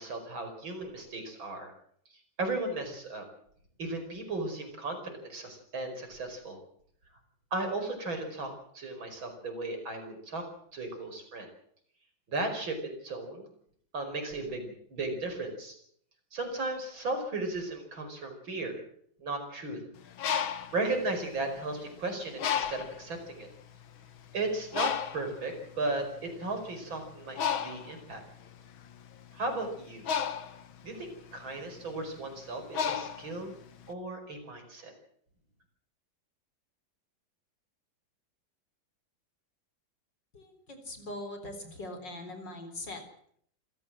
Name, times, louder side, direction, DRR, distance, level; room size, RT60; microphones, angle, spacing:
voice 1, 0.0-1.7 2.4-3.3 3.8-6.6 7.5-11.5 12.3-13.5 13.9-15.8 16.3-18.8 19.2-19.8 20.7-23.5 24.3-28.2 29.3-30.0 30.8-33.6 33.9-34.9, right 2 dB, 80° right, 5 dB, 5.9 m, -35 dB
Bird, 20.0-21.8 22.4-23.1 23.7-23.9 24.1-33.9, left 8 dB, 85° left, 2.1 m, -34 dB
voice 2, 40.3-43.0, left 1 dB, 60° left, 7 dB, 4.8 m, -41 dB
27.0 x 15.0 x 7.7 m, 0.65 s
omnidirectional pair, 2.1 m